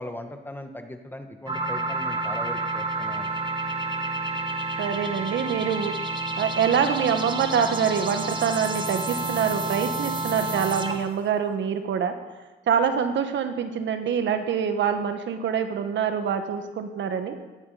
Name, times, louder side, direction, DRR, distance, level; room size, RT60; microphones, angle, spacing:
voice 1, 0.0-3.3, left 1 dB, 10° left, 5 dB, 1.7 m, -38 dB
sound 1, 1.5-11.2, right 2 dB, 25° right, 1.8 m, -29 dB
voice 2, 4.8-5.9 6.4-12.2 12.7-17.4, right 7 dB, 70° right, 7 dB, 1.6 m, -25 dB
18.0 x 12.0 x 5.2 m, 1.2 s
cardioid pair, 90°, 20 cm